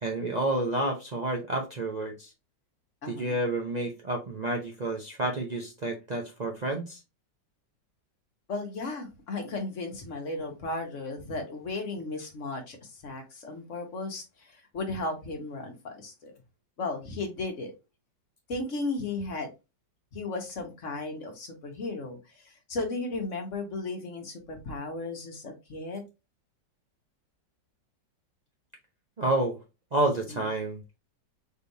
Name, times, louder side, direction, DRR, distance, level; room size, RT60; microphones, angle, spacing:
voice 1, 0.0-2.3 3.1-7.0 29.2-29.6 29.9-30.8, right 2 dB, 75° right, 0 dB, 0.3 m, -29 dB
voice 2, 3.0-3.4 8.5-16.3 16.8-17.7 18.5-19.5 20.1-26.0 30.3-30.5, left 3 dB, 45° left, 3 dB, 1.4 m, -35 dB
4.3 x 3.4 x 2.7 m, 0.26 s
omnidirectional pair, 2.0 m